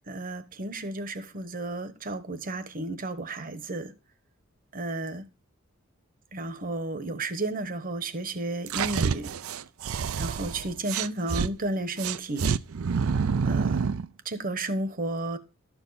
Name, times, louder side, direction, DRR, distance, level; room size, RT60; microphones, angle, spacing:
voice 1, 0.1-3.9 4.7-5.2 6.3-9.3 10.2-12.5 13.4-13.9 14.2-15.4, right 2 dB, 45° right, 1.1 m, -32 dB
sound 1, 8.7-11.5 12.0-14.1, right 6 dB, 85° right, 0.5 m, -27 dB
12.5 x 7.2 x 4.0 m
head